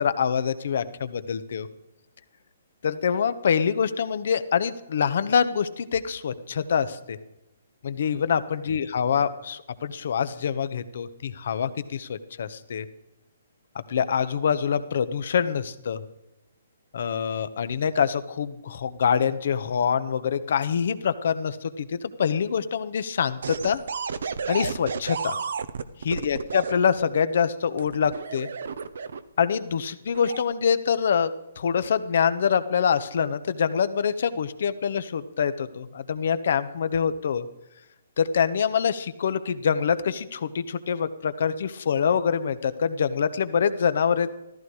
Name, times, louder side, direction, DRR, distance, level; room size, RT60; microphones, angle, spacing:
voice 1, 0.0-1.7 2.8-7.2 7.8-12.9 13.7-16.0 16.9-23.8 24.5-25.4 26.0-28.5 29.4-37.5 38.2-44.4, left 7 dB, 65° left, 13 dB, 1.1 m, -25 dB
sound 1, 23.4-26.7 27.8-29.4 30.1-30.4, right 6 dB, 70° right, 1.0 m, -32 dB
14.5 x 14.0 x 4.8 m, 0.95 s
hypercardioid pair, 135°, 0 cm